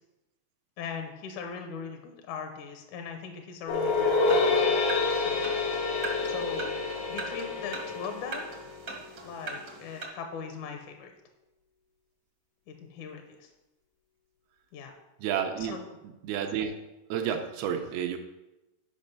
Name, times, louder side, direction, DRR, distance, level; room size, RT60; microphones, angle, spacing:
voice 1, 0.8-4.7 5.2-5.4 6.2-6.8 7.1-8.5 9.2-11.1 12.7-13.5 14.7-14.9 15.6-15.8, left 6 dB, 75° left, 5 dB, 1.9 m, -40 dB
sound 1, 3.7-8.9, left 3 dB, 90° left, 3.3 m, -27 dB
sound 2, 4.2-10.0, right 3 dB, 70° right, 1.0 m, -41 dB
voice 2, 15.2-15.8 16.2-16.7 17.1-18.2, right 8 dB, 90° right, 5 dB, 2.6 m, -30 dB
11.0 x 5.2 x 5.4 m, 1.0 s
omnidirectional pair, 4.4 m